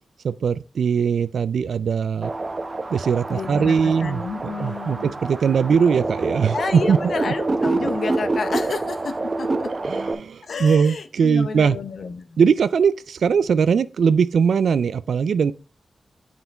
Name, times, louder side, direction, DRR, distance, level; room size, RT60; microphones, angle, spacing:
voice 1, 0.2-2.3 2.9-7.0 7.3-7.4 9.8-11.8 12.4-15.5, right 6 dB, 90° right, 0.3 m, -20 dB
sound 1, 2.2-10.1, right 2 dB, 40° right, 0.8 m, -27 dB
voice 2, 3.3-5.1 6.5-9.5 10.4-12.4, left 4 dB, 75° left, 0.7 m, -30 dB
7.1 x 5.7 x 3.4 m
cardioid pair, 55°, 0 cm